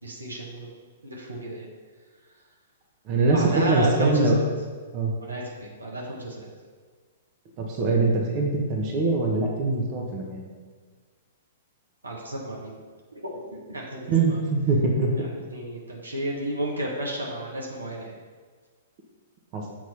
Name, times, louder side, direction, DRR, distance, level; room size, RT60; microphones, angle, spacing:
voice 1, 0.0-0.7 1.0-1.7 3.3-4.5 5.2-6.5 12.0-12.7 13.1-14.5 15.2-18.2, right 1 dB, 85° right, -2 dB, 1.3 m, -32 dB
voice 2, 3.1-4.4 4.9-5.1 7.6-10.5 14.1-15.3 19.5-19.6, right 3 dB, 40° right, 1 dB, 1.1 m, -23 dB
7.1 x 3.0 x 5.6 m, 1.5 s
figure-of-eight pair, 110°, 0 cm